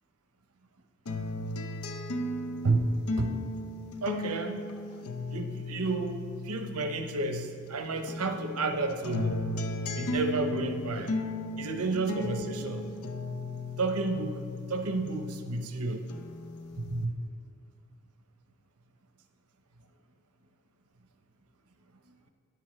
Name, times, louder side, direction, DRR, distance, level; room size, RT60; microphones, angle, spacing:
sound 1, 1.1-7.7 8.1-15.7 16.1-17.1, left 1 dB, 80° left, 0.7 m, -36 dB
voice 1, 2.6-3.4 4.0-4.6 5.3-9.5 9.9-11.1 11.6-12.9 13.8-14.4 14.7-16.1 16.8-17.2, right 2 dB, 85° right, 6 dB, 0.9 m, -31 dB
12.5 x 9.8 x 3.3 m, 2.3 s
head